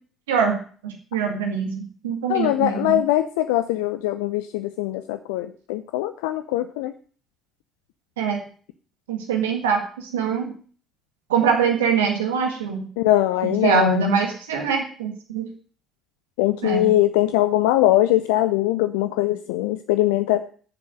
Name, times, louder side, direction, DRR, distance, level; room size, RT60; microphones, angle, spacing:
voice 1, 0.3-1.8 2.0-3.0 8.2-8.4 9.1-10.5 11.3-12.9 13.4-15.5 16.6-16.9, right 6 dB, 75° right, 3 dB, 1.8 m, -23 dB
voice 2, 2.3-6.9 13.0-14.0 16.4-20.5, left 14 dB, 70° left, 11 dB, 0.6 m, -21 dB
11.5 x 7.2 x 7.6 m, 0.43 s
figure-of-eight pair, 50°, 0 cm